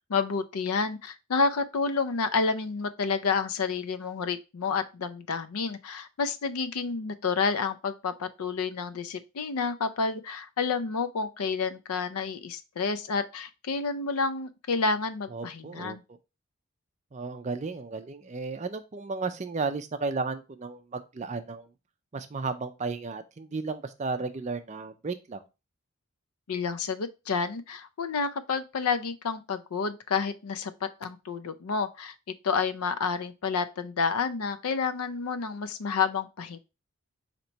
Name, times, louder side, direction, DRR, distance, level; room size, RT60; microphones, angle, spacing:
voice 1, 0.1-16.0 26.5-32.1 32.4-36.6, left 5 dB, 80° left, 0.5 m, -29 dB
voice 2, 15.3-16.0 17.1-21.7 22.1-25.4, right 4 dB, 30° right, 0.4 m, -34 dB
4.0 x 2.9 x 4.4 m
head